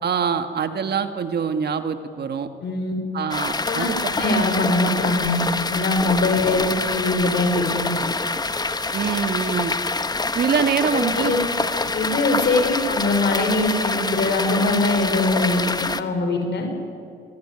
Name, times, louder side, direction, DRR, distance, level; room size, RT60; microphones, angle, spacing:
voice 1, 0.0-2.5 3.1-4.4 8.9-9.7 10.3-11.3 12.3-12.4, right 7 dB, 55° right, 8 dB, 1.9 m, -24 dB
voice 2, 2.6-2.9 3.7-5.4 5.7-7.9 10.9-11.4 11.9-16.7, left 2 dB, 60° left, 5 dB, 5.8 m, -22 dB
sound 1, 3.3-16.0, left 3 dB, 20° left, 1.2 m, -26 dB
26.5 x 19.5 x 9.9 m, 2.4 s
cardioid pair, 90°, 20 cm